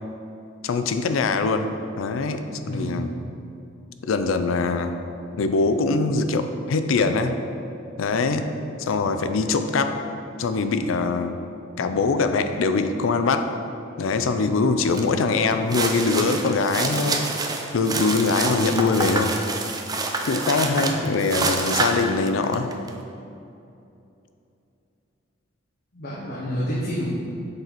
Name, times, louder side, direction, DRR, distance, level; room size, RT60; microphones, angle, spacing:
voice 1, 0.6-1.7 2.0-2.4 2.7-3.1 4.0-4.9 5.4-7.4 8.0-8.5 8.8-10.0 10.4-11.3 11.8-13.5 14.0-17.2 17.7-19.3 20.3-22.7, left 4 dB, 80° left, 8 dB, 0.4 m, -22 dB
voice 2, 2.7-3.0 20.6-21.0 25.9-27.1, equal, 50° left, -8 dB, 1.1 m, -29 dB
sound 1, 14.9-15.1 15.5-22.9, right 3 dB, 20° right, 0.4 m, -27 dB
6.6 x 4.0 x 4.5 m, 2.7 s
head